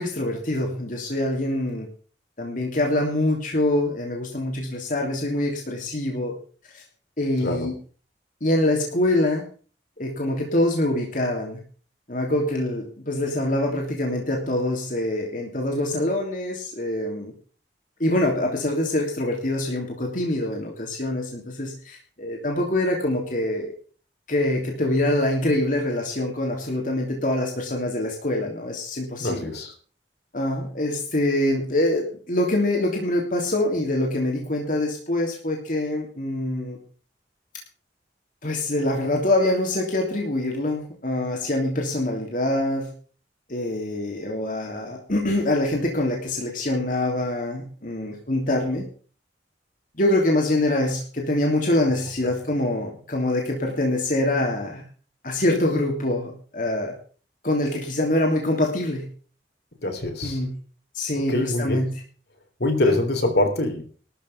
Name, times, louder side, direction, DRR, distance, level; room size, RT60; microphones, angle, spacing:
voice 1, 0.0-1.9 2.4-6.3 6.7-6.8 7.2-7.7 8.4-9.4 10.0-11.6 12.1-17.3 18.0-23.7 24.3-29.5 30.3-36.8 38.4-42.9 43.5-48.9 50.0-54.8 55.2-56.9 57.4-59.1 60.2-60.6 60.9-61.9, left 1 dB, 50° left, 1 dB, 3.1 m, -24 dB
voice 2, 29.2-29.7 59.8-60.4 61.2-61.9 62.6-63.9, left 1 dB, 65° left, 4 dB, 3.7 m, -24 dB
13.0 x 7.1 x 8.7 m, 0.41 s
head